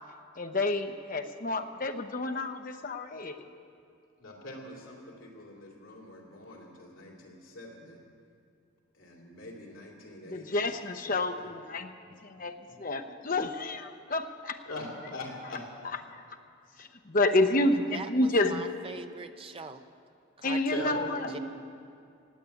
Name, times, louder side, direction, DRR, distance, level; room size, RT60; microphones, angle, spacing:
voice 1, 0.4-3.5 10.3-11.9 12.2-14.6 16.8-18.6 20.4-21.1, left 2 dB, 40° left, 6 dB, 0.7 m, -29 dB
voice 2, 4.2-8.0 8.9-10.6 11.1-11.5 12.1-12.7 14.7-15.7 20.7-21.4, left 1 dB, 75° left, 0 dB, 2.7 m, -42 dB
voice 3, 17.9-19.8 20.4-20.9 21.3-21.4, right 4 dB, 25° right, 8 dB, 0.5 m, -42 dB
18.5 x 8.3 x 8.4 m, 2.4 s
head